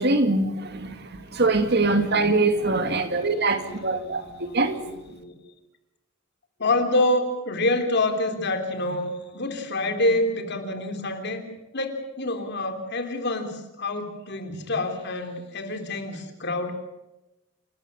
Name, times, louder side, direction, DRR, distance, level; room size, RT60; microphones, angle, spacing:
voice 1, 0.0-4.8, right 2 dB, 55° right, 8 dB, 2.2 m, -23 dB
voice 2, 2.9-5.3 6.6-11.4 11.7-16.7, left 2 dB, 55° left, 6 dB, 3.3 m, -27 dB
29.0 x 13.0 x 8.5 m, 0.99 s
head